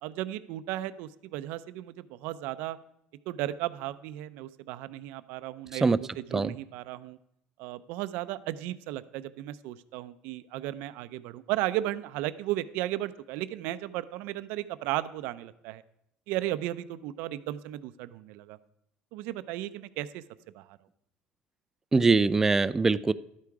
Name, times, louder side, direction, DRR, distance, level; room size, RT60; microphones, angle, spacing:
voice 1, 0.0-2.8 3.3-7.2 7.6-15.8 16.3-18.6 19.1-20.2 20.5-20.8, right 15 dB, 80° right, 14 dB, 0.6 m, -35 dB
voice 2, 21.9-23.1, right 4 dB, 15° right, 16 dB, 0.3 m, -23 dB
12.5 x 8.5 x 4.7 m, 0.78 s
cardioid pair, 145°, 3 cm